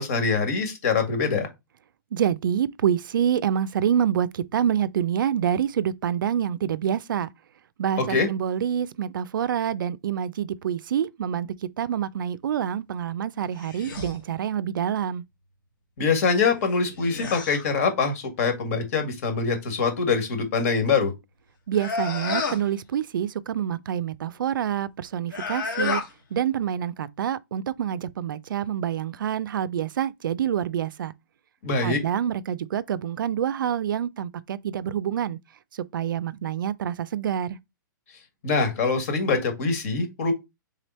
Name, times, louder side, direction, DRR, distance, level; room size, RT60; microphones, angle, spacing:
voice 1, 0.0-1.5 8.0-8.3 16.0-21.1 31.6-32.0 38.4-40.3, left 4 dB, 45° left, 1.5 m, -24 dB
voice 2, 2.1-7.3 7.8-11.5 11.8-15.2 21.7-26.0 26.3-31.1 31.8-35.4 35.9-37.5, right 9 dB, 75° right, 0.4 m, -27 dB
sound 1, 13.6-14.2 16.7-17.7 21.7-22.7 25.2-26.1, left 4 dB, 70° left, 1.6 m, -30 dB
3.7 x 3.3 x 4.1 m
hypercardioid pair, 155°, 11 cm